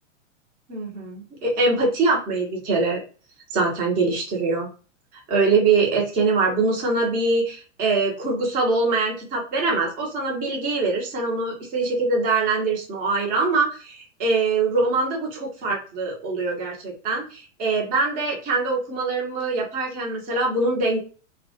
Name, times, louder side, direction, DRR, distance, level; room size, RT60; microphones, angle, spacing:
voice 1, 0.7-3.0 3.5-4.7 5.1-21.0, right 3 dB, 20° right, -1 dB, 0.7 m, -23 dB
2.3 x 2.2 x 2.5 m, 0.36 s
figure-of-eight pair, 105°, 38 cm